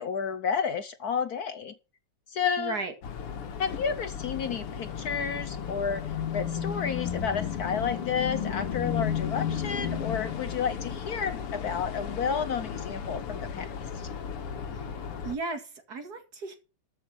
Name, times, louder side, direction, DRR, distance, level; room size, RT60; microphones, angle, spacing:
voice 1, 0.0-1.7 2.3-2.8 3.6-6.0 6.3-13.7 13.9-14.1, left 6 dB, 60° left, 1.0 m, -31 dB
voice 2, 2.6-2.9 14.7-14.8 15.2-16.6, right 4 dB, 45° right, 2.6 m, -35 dB
sound 1, 3.0-15.3, left 8 dB, 90° left, 2.2 m, -34 dB
13.5 x 6.4 x 6.4 m
omnidirectional pair, 2.4 m